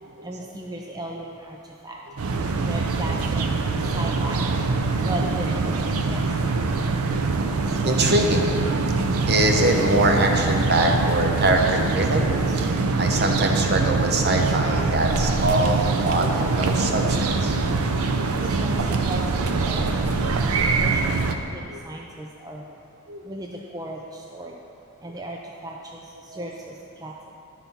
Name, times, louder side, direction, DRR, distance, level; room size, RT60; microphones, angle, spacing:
voice 1, 0.2-2.0 2.7-3.5 3.8-4.5 5.0-6.4 18.4-22.7 23.2-24.6 25.0-27.3, right 1 dB, 20° right, 0 dB, 0.4 m, -36 dB
voice 2, 2.2-2.6 4.9-5.1 6.2-7.2 7.6-8.9 9.3-17.6 21.7-21.8 23.1-23.2 26.3-26.5, right 2 dB, 50° right, 2 dB, 0.8 m, -24 dB
sound 1, 2.2-21.3, right 3 dB, 90° right, 0.6 m, -23 dB
11.0 x 4.1 x 5.8 m, 2.6 s
head